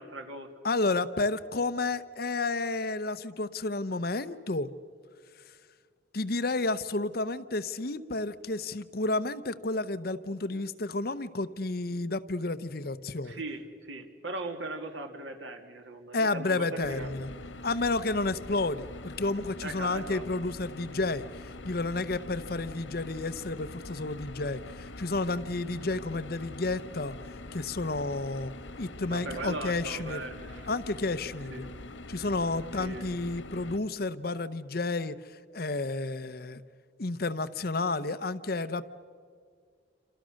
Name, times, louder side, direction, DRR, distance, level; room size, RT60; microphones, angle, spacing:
voice 1, 0.0-0.5 13.2-17.1 19.6-20.3 29.1-30.8 31.5-31.7 32.8-33.1, right 2 dB, 85° right, 5 dB, 2.6 m, -39 dB
voice 2, 0.6-4.7 6.1-13.4 16.1-17.3 17.6-27.2 27.5-28.5 28.8-30.2 30.7-31.7 32.1-36.6 37.0-38.8, left 3 dB, 50° left, 12 dB, 0.8 m, -31 dB
sound 1, 16.8-33.8, left 2 dB, 85° left, 1.6 m, -44 dB
28.5 x 27.0 x 6.5 m, 2.1 s
head